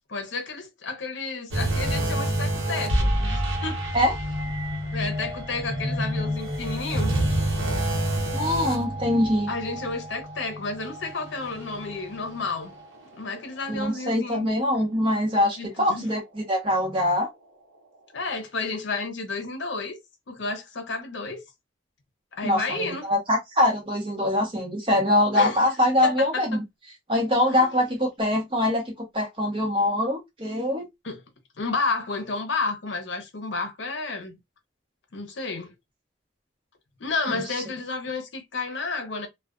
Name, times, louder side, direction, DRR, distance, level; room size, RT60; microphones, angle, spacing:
voice 1, 0.1-3.9 4.9-7.1 9.5-12.7 13.1-14.5 15.6-16.0 18.1-20.0 20.3-21.4 22.3-23.1 25.3-25.6 26.0-26.6 27.5-27.8 31.0-31.2 31.6-34.4 35.1-35.7 37.0-39.3, left 3 dB, 70° left, 0.7 m, -31 dB
sound 1, 1.5-13.0 13.3-13.5 14.1-14.2, right 1 dB, 85° right, 0.9 m, -28 dB
voice 2, 8.3-9.5 13.7-17.3 22.4-26.6 27.1-30.9 37.3-37.4, left 1 dB, 25° right, 0.9 m, -23 dB
2.4 x 2.2 x 2.3 m
head